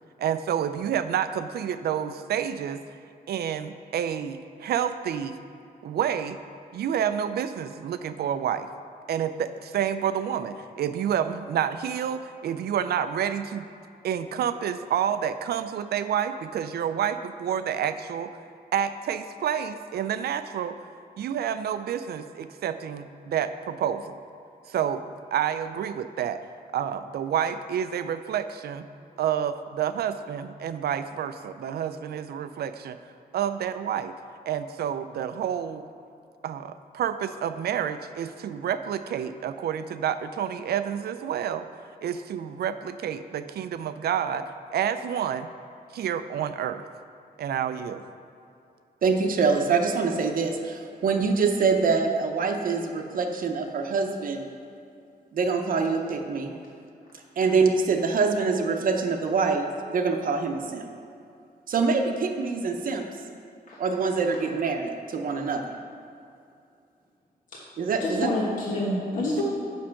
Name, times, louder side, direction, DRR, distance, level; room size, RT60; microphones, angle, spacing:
voice 1, 0.2-2.8 3.3-5.4 5.8-6.4 6.7-8.7 9.1-13.6 14.0-18.3 18.7-20.8 21.2-24.2 24.7-25.0 25.3-26.4 26.7-28.9 29.2-33.0 33.3-34.1 34.5-35.8 36.4-41.7 42.0-44.5 44.7-45.5 45.9-46.8 47.4-48.0, right 9 dB, 90° right, 11 dB, 0.4 m, -29 dB
voice 2, 49.0-54.5 55.3-56.5 57.4-60.8 61.7-63.0 63.8-65.8 67.8-68.3, right 4 dB, 60° right, 4 dB, 0.7 m, -25 dB
voice 3, 68.0-69.4, left 1 dB, 55° left, -5 dB, 1.2 m, -27 dB
7.6 x 5.5 x 5.8 m, 2.5 s
wide cardioid pair, 170°, 16 cm